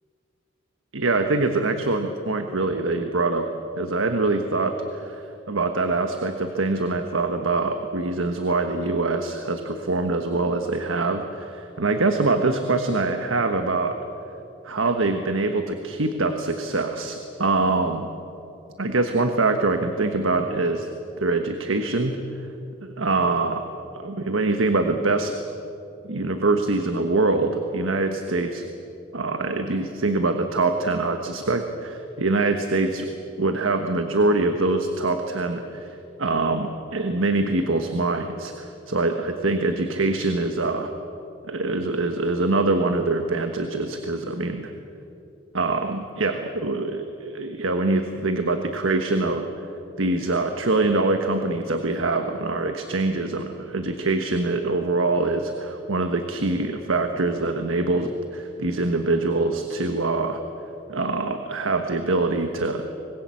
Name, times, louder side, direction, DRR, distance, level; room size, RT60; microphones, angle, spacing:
voice 1, 1.0-3.5 3.8-13.9 14.6-18.1 18.8-20.9 21.2-22.2 22.8-23.6 23.9-25.3 26.0-28.6 29.1-33.1 33.4-40.9 41.5-44.7 45.5-49.4 50.0-60.4 60.9-62.8, right 3 dB, 75° right, 6 dB, 1.3 m, -24 dB
25.5 x 21.0 x 7.7 m, 2.8 s
head